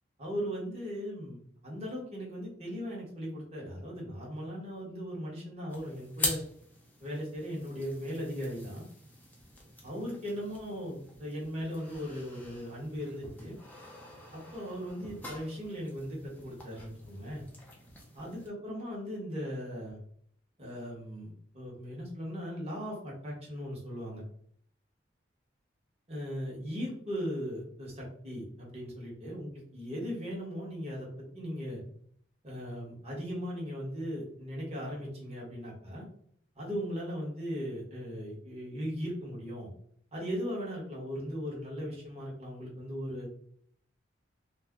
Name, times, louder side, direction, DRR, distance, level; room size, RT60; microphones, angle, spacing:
voice 1, 0.2-6.4 7.0-8.8 9.8-13.6 14.3-17.4 18.1-20.0 20.6-24.2 26.1-31.1 31.3-31.8 32.4-36.1 36.6-39.7 40.1-43.3, equal, 35° right, -4 dB, 1.0 m, -38 dB
sound 1, 5.7-18.5, left 1 dB, 10° left, 0.4 m, -43 dB
2.4 x 2.0 x 3.4 m, 0.63 s
head